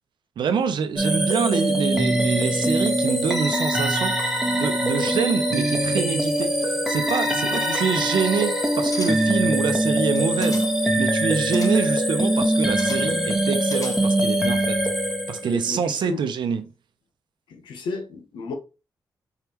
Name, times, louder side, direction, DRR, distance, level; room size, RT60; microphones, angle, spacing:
voice 1, 0.4-10.6 11.0-14.8 15.3-16.6, right 6 dB, 75° right, 0.7 m, -26 dB
sound 1, 1.0-15.7, right 1 dB, 5° right, 1.2 m, -22 dB
voice 2, 7.4-7.9 8.7-9.1 15.5-16.2 17.5-18.5, left 4 dB, 90° left, 1.0 m, -34 dB
sound 2, 8.9-9.4 10.1-10.9 11.5-11.9 12.8-13.2 13.6-14.3 14.6-14.7, left 3 dB, 45° left, 1.0 m, -40 dB
4.6 x 3.5 x 3.0 m
cardioid pair, 55°, 8 cm